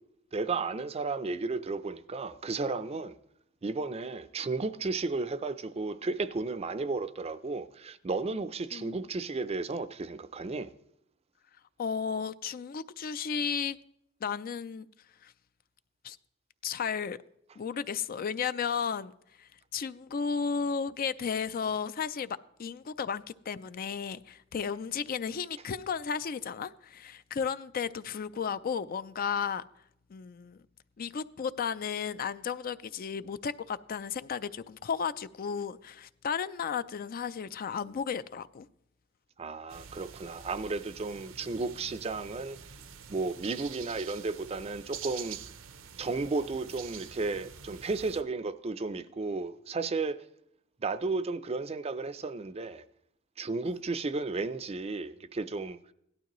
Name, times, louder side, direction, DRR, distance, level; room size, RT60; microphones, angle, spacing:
voice 1, 0.3-3.2 3.6-10.7 39.4-42.6 43.1-45.4 46.0-50.2 50.8-52.8 53.4-55.8, right 3 dB, 30° right, 0.5 m, -33 dB
voice 2, 8.7-9.0 11.8-13.8 14.2-14.9 15.2-15.3 16.0-16.2 16.6-17.2 17.6-19.1 19.4-29.6 30.1-30.6 31.0-38.7 53.7-53.8, left 6 dB, 45° left, 0.4 m, -34 dB
sound 1, 39.7-48.2, right 8 dB, 75° right, 0.7 m, -47 dB
17.0 x 12.0 x 3.0 m
head